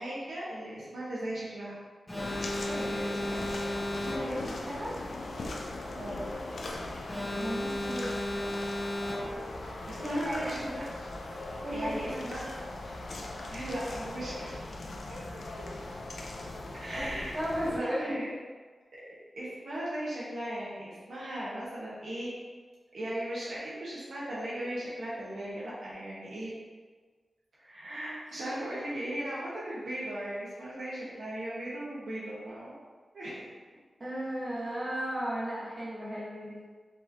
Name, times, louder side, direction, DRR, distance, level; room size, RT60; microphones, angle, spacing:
voice 1, 0.0-1.7 2.7-3.4 6.0-6.2 9.9-10.9 11.7-12.5 13.5-14.6 15.5-15.8 16.7-17.4 17.7-18.3 18.9-22.3 22.9-26.5 27.6-32.7 33.1-33.5, right 1 dB, 70° right, -9 dB, 1.1 m, -37 dB
Alarm, 2.1-4.6 7.1-9.6, left 1 dB, 15° left, 0.5 m, -34 dB
sound 1, 2.2-17.8, left 2 dB, 65° left, 0.5 m, -39 dB
voice 2, 3.9-4.9 7.3-8.5 10.0-10.6 11.6-12.3 16.9-18.2 34.0-36.6, equal, 40° right, -9 dB, 1.2 m, -35 dB
4.6 x 3.0 x 2.7 m, 1.5 s
wide cardioid pair, 135°, 0 cm